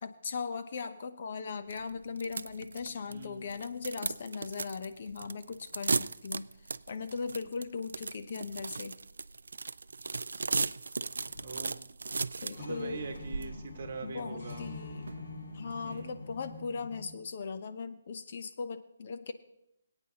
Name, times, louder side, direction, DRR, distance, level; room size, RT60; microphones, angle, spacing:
voice 1, 0.0-6.5 6.9-8.9 12.4-13.0 14.0-15.1 15.5-19.3, left 5 dB, 45° left, 10 dB, 0.7 m, -39 dB
sound 1, 1.7-16.6, right 4 dB, 90° right, 0.3 m, -37 dB
voice 2, 3.1-3.5 11.4-11.8 12.6-14.7 15.8-16.2, right 4 dB, 40° right, 4 dB, 1.7 m, -42 dB
sound 2, 11.2-11.6 12.1-12.2 12.5-17.1, left 3 dB, 65° left, 4.2 m, -45 dB
22.0 x 9.0 x 2.9 m, 0.80 s
hypercardioid pair, 170°, 0 cm